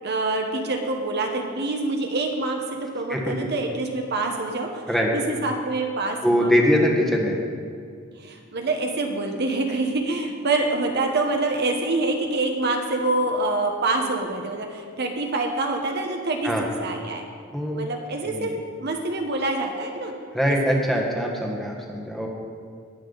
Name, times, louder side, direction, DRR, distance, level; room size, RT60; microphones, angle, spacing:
voice 1, 0.0-4.8 5.1-6.7 8.2-16.5 16.8-17.2 17.7-18.5 18.8-20.1 20.5-20.6, right 2 dB, 55° right, 3 dB, 1.1 m, -26 dB
voice 2, 6.2-7.4 16.4-16.6 17.5-17.8 18.2-18.5 20.3-22.3, equal, ahead, -1 dB, 1.4 m, -22 dB
18.5 x 7.1 x 4.0 m, 2.2 s
head